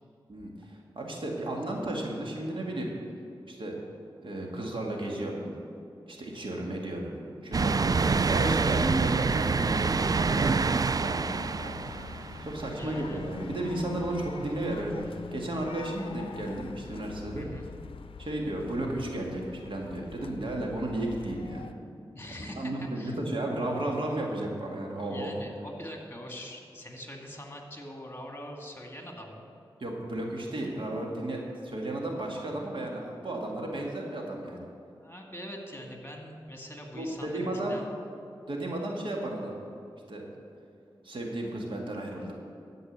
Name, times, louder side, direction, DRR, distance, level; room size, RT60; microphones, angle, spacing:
voice 1, 0.3-2.9 3.5-3.8 4.2-5.5 6.1-11.8 12.4-17.5 18.2-21.7 22.3-25.4 29.8-34.7 36.9-37.8 38.5-39.6 40.1-40.3 41.0-42.3, right 1 dB, 65° right, 0 dB, 2.1 m, -33 dB
sound 1, 7.5-13.1 13.6-13.7 15.0-15.1, right 4 dB, 45° right, 0.3 m, -27 dB
sound 2, 11.3-21.7, left 5 dB, 85° left, 0.5 m, -44 dB
voice 2, 12.8-13.2 17.3-17.7 22.1-23.2 25.1-29.5 35.0-37.9, left 1 dB, 25° left, 1 dB, 2.2 m, -43 dB
14.0 x 5.4 x 8.2 m, 2.6 s
cardioid pair, 45°, 9 cm